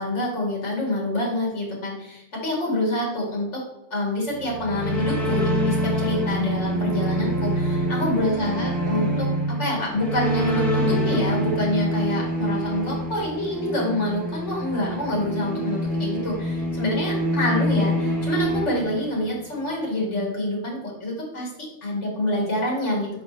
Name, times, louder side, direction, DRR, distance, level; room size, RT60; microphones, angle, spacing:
voice 1, 0.0-3.6 3.9-23.2, left 1 dB, 70° left, -2 dB, 2.2 m, -27 dB
sound 1, 4.3-19.5, equal, ahead, 1.2 m, -26 dB
5.6 x 5.0 x 3.3 m, 0.84 s
omnidirectional pair, 1.3 m